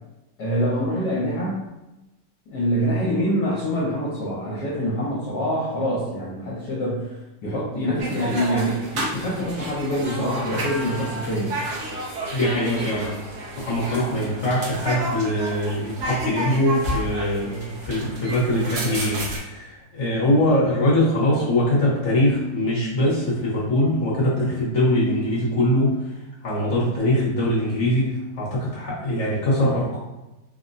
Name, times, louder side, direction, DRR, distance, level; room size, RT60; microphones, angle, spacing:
voice 1, 0.4-1.6 2.5-11.6, equal, 70° left, -7 dB, 1.3 m, -25 dB
sound 1, 8.0-19.4, right 1 dB, 70° right, 1.2 m, -31 dB
voice 2, 12.3-13.1 13.6-26.0 26.4-30.0, left 1 dB, 45° left, -7 dB, 1.1 m, -22 dB
3.5 x 2.1 x 2.5 m, 1.0 s
omnidirectional pair, 2.0 m